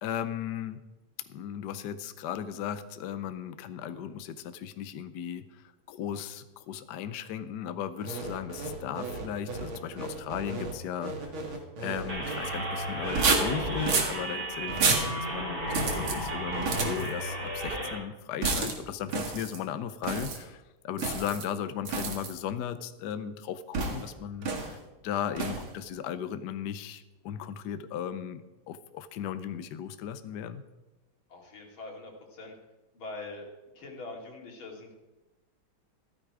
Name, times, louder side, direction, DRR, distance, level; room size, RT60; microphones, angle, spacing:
voice 1, 0.0-0.8 1.3-24.8 25.0-30.6, left 9 dB, 65° left, 11 dB, 1.2 m, -36 dB
sound 1, 8.0-12.4 13.0-14.2 14.7-15.1 15.7-16.2 16.5-17.1 18.4-18.8 19.1-19.6 20.0-20.4 21.0-21.4 21.8-22.3 23.7-24.1 24.4-24.8 25.4-25.7, right 4 dB, 85° right, 2.6 m, -30 dB
sound 2, 12.1-18.0, right 1 dB, 55° right, 3.4 m, -33 dB
voice 2, 31.3-32.6 32.9-33.5 33.7-34.9, left 2 dB, 85° left, 0 dB, 3.3 m, -43 dB
15.0 x 12.5 x 4.9 m, 1.1 s
omnidirectional pair, 2.2 m